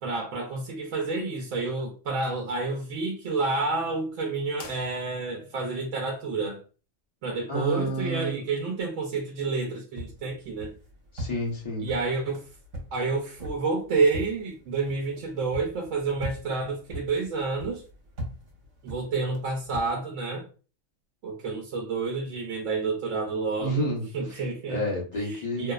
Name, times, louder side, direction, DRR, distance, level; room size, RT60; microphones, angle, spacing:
voice 1, 0.0-6.6 7.2-10.7 11.8-12.5 12.9-17.8 18.8-20.5 21.2-24.8 25.2-25.7, right 3 dB, 85° right, 1.0 m, -29 dB
sound 1, 4.5-5.6, left 4 dB, 85° left, 1.0 m, -47 dB
voice 2, 7.5-8.3 11.1-11.9 23.6-24.1 24.7-25.7, equal, 40° left, 0.8 m, -29 dB
sound 2, 9.9-19.9, equal, 65° right, 1.2 m, -41 dB
2.7 x 2.0 x 2.2 m
omnidirectional pair, 1.3 m